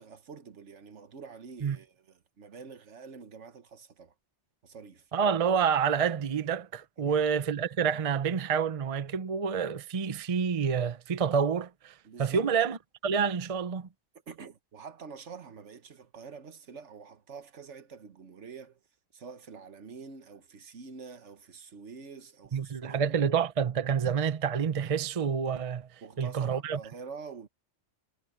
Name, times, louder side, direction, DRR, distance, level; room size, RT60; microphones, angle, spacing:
voice 1, 0.0-4.1 4.6-5.1 7.1-7.2 12.0-12.5 14.3-18.8 19.1-23.1 26.0-27.5, right 5 dB, 70° right, 1.5 m, -47 dB
voice 2, 5.1-13.9 22.5-26.8, right 6 dB, 35° right, 0.7 m, -28 dB
omnidirectional pair, 1.3 m